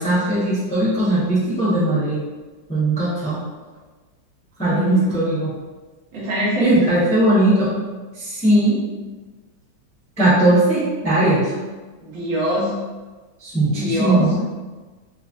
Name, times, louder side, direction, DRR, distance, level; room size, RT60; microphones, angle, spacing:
voice 1, 0.0-2.2 2.7-3.4 4.6-5.5 6.6-7.7 8.4-8.8 10.2-11.4 13.4-14.3, right 1 dB, 10° left, -11 dB, 0.5 m, -18 dB
voice 2, 4.6-5.1 6.1-6.9 12.0-12.7 13.6-14.3, equal, 70° right, -6 dB, 1.5 m, -23 dB
4.0 x 2.5 x 2.5 m, 1.3 s
omnidirectional pair, 2.2 m